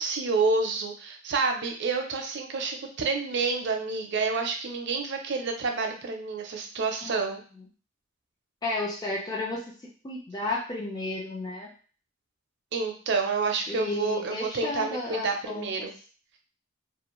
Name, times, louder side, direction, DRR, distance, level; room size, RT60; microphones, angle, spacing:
voice 1, 0.0-7.4 12.7-15.9, right 4 dB, 60° right, 3 dB, 0.5 m, -29 dB
voice 2, 8.6-9.7 10.0-11.7 13.7-15.7, left 2 dB, 20° left, -3 dB, 0.4 m, -32 dB
2.4 x 2.0 x 2.9 m, 0.40 s
head